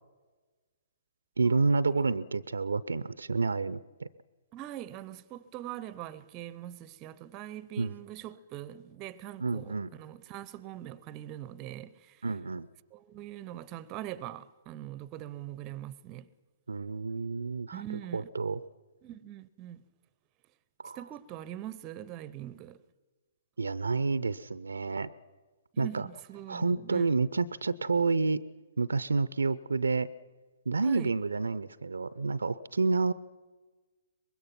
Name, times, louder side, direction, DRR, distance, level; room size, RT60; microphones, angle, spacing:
voice 1, 1.4-4.1 7.8-7.9 9.4-9.9 12.2-12.7 16.7-17.8 18.1-18.6 20.8-21.0 23.6-25.1 25.8-26.0 26.5-28.4 28.8-30.1 30.7-33.1, right 4 dB, 70° right, 0.6 m, -29 dB
voice 2, 4.5-12.3 12.9-16.3 17.7-18.3 19.0-19.8 20.9-22.8 25.7-27.1 30.8-31.1, right 12 dB, 25° right, 0.7 m, -42 dB
24.0 x 21.0 x 5.9 m
figure-of-eight pair, 125°, 0 cm